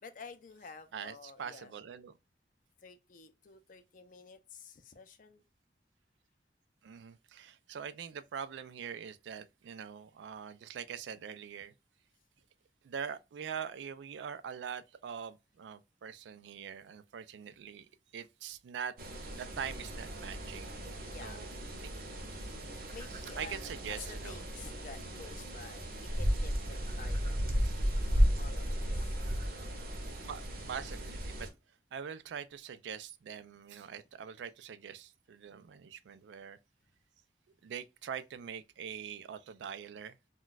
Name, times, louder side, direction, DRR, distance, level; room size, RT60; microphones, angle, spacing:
voice 1, 0.0-1.8 2.8-5.4 21.0-21.5 22.9-27.3 27.7-29.1, left 4 dB, 50° left, 0.4 m, -51 dB
voice 2, 0.9-2.2 6.8-11.7 12.8-18.9 19.3-20.7 21.2-21.5 21.8-21.9 23.4-24.4 27.6-27.7 30.3-31.5 31.9-36.6 37.6-40.2, right 7 dB, 90° right, 0.3 m, -43 dB
sound 1, 19.0-31.5, equal, 50° right, 0.7 m, -34 dB
2.3 x 2.2 x 3.8 m
head